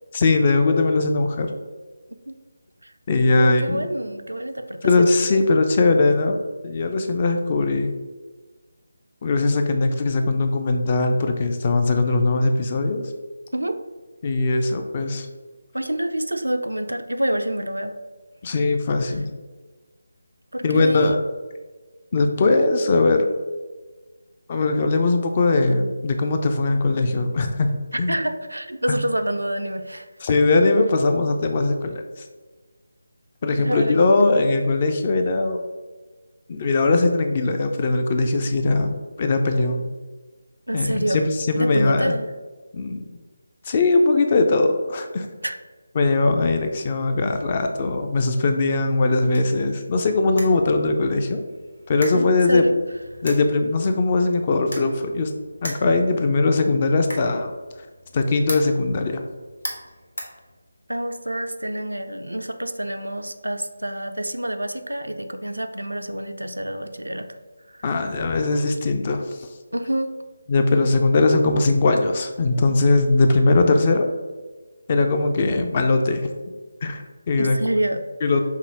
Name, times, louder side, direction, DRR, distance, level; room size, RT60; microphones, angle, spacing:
voice 1, 0.1-1.5 3.1-3.9 4.8-7.9 9.2-13.1 14.2-15.3 18.4-19.3 20.6-21.2 22.1-23.3 24.5-27.7 28.0-28.2 28.9-29.0 30.2-32.2 33.4-35.6 36.5-39.9 40.7-42.1 42.7-43.0 43.7-45.3 46.0-51.4 51.9-52.6 53.2-55.3 55.6-57.5 58.1-59.2 67.8-69.5 70.5-74.1 74.9-76.2 76.8-77.6 78.2-78.4, left 3 dB, 30° left, 5 dB, 0.4 m, -20 dB
voice 2, 3.4-5.1 13.5-13.8 15.7-18.0 19.1-19.2 20.5-21.2 27.9-30.1 33.6-34.3 40.7-41.2 41.5-42.3 45.4-45.6 52.1-52.8 60.9-67.3 67.7-67.8 69.7-70.1 77.4-78.1, right 1 dB, 75° right, 8 dB, 0.4 m, -27 dB
sound 1, 49.1-61.1, left 1 dB, 65° left, 1.1 m, -40 dB
5.5 x 2.1 x 4.6 m, 1.3 s
figure-of-eight pair, 155°, 0 cm